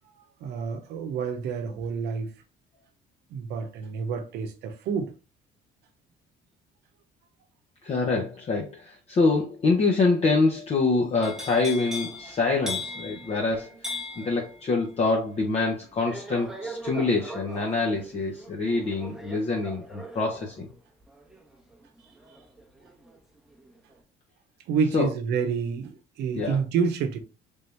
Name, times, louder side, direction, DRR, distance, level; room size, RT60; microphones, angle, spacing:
voice 1, 0.4-2.3 3.3-5.1 24.7-27.2, right 6 dB, 80° right, 0.8 m, -28 dB
voice 2, 7.8-20.7 24.9-25.1 26.3-26.6, left 3 dB, 40° left, 0.8 m, -25 dB
sound 1, 11.2-23.2 23.5-24.0, left 1 dB, 5° right, 0.9 m, -40 dB
3.6 x 2.8 x 3.3 m
cardioid pair, 110°, 17 cm